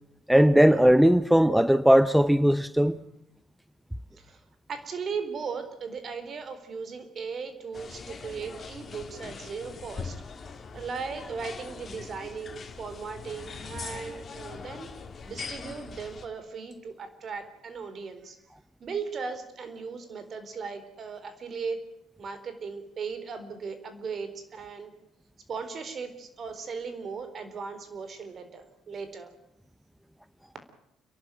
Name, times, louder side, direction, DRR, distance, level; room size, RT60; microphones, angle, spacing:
voice 1, 0.3-3.0, equal, 5° right, 0.8 m, -19 dB
voice 2, 4.7-10.2 10.7-14.9 15.2-18.4 18.8-21.8 22.2-24.9 25.5-29.3, right 5 dB, 50° right, 4.1 m, -37 dB
sound 1, 7.7-16.3, left 5 dB, 45° left, 2.8 m, -42 dB
30.0 x 12.0 x 9.1 m
supercardioid pair, 60°, 0 cm